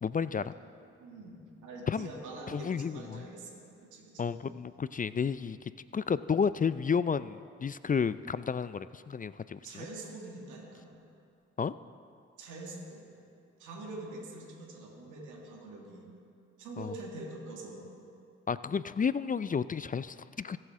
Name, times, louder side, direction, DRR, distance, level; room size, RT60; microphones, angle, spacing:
voice 1, 0.0-0.6 1.9-2.1 2.5-3.3 4.2-9.9 11.6-11.7 16.8-16.9 18.5-20.6, left 6 dB, 30° left, 15 dB, 0.4 m, -32 dB
voice 2, 1.0-3.6 3.9-4.3 9.6-10.9 12.4-13.0 13.6-16.1 16.6-17.8, right 2 dB, 85° right, -1 dB, 2.0 m, -44 dB
21.5 x 7.7 x 3.7 m, 2.4 s
supercardioid pair, 40°, 30 cm